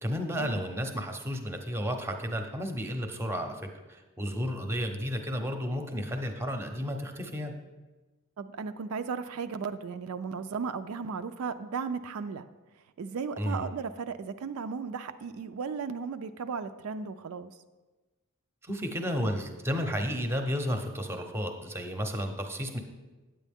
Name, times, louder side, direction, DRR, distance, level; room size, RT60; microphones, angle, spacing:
voice 1, 0.0-3.6 3.9-7.5 13.4-13.7 18.7-22.8, equal, 10° right, 5 dB, 0.7 m, -32 dB
voice 2, 8.4-12.4 13.0-17.5, right 5 dB, 75° right, 9 dB, 0.4 m, -35 dB
9.0 x 8.3 x 3.5 m, 1.2 s
head